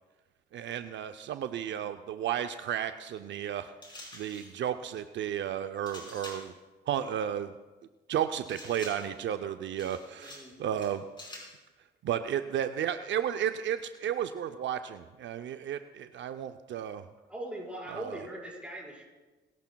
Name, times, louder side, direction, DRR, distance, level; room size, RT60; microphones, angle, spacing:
voice 1, 0.5-3.7 4.1-6.5 6.9-7.6 8.1-11.0 12.0-17.1 17.9-18.2, right 9 dB, 70° right, 9 dB, 0.5 m, -33 dB
sound 1, 3.8-4.6 5.9-6.6 8.5-9.2 9.8-10.5 10.8-11.6, left 2 dB, 25° left, 4.7 m, -47 dB
voice 2, 10.2-10.5 17.3-19.0, right 1 dB, 5° right, -4 dB, 5.1 m, -40 dB
23.0 x 12.0 x 2.3 m, 1.2 s
cardioid pair, 90°, 20 cm